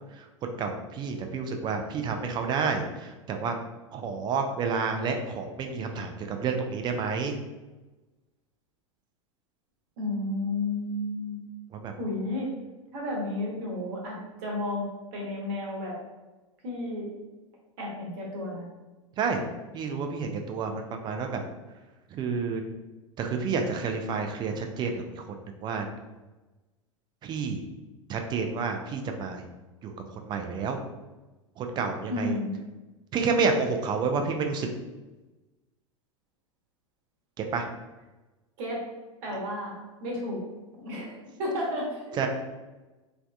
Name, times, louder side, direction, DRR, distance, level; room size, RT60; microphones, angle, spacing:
voice 1, 0.1-3.6 3.9-7.4 11.7-11.9 19.2-19.5 19.7-21.4 22.1-22.6 23.2-25.2 25.6-25.9 27.2-27.6 28.1-29.4 29.8-30.8 31.6-32.3 33.1-34.7 37.4-37.7 42.2-42.3, right 5 dB, 25° right, 4 dB, 0.4 m, -29 dB
voice 2, 10.0-11.4 12.0-12.5 12.9-16.0 16.6-17.1 17.8-18.7 32.1-32.5 38.6-38.9 39.2-40.5 40.8-42.2, left 1 dB, 50° right, -2 dB, 1.1 m, -32 dB
3.2 x 2.6 x 2.3 m, 1.1 s
figure-of-eight pair, 90°, 17 cm